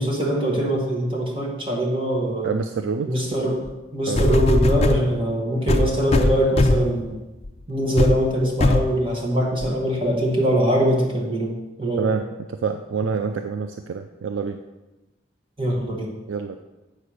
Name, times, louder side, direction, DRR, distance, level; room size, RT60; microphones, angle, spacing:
voice 1, 0.0-2.5 3.0-3.6 3.9-7.2 7.7-11.5 11.8-12.1 15.6-16.1, right 1 dB, 30° right, -2 dB, 1.4 m, -22 dB
voice 2, 2.4-3.2 4.1-4.3 12.0-14.6 16.3-16.6, right 5 dB, 90° right, 7 dB, 0.4 m, -27 dB
sound 1, 3.6-3.7 4.2-5.0 5.7-6.9 7.4-7.6 8.0-8.2 8.6-8.9 9.6-9.7, left 2 dB, 35° left, 0.5 m, -19 dB
8.5 x 4.5 x 6.3 m, 1.1 s
head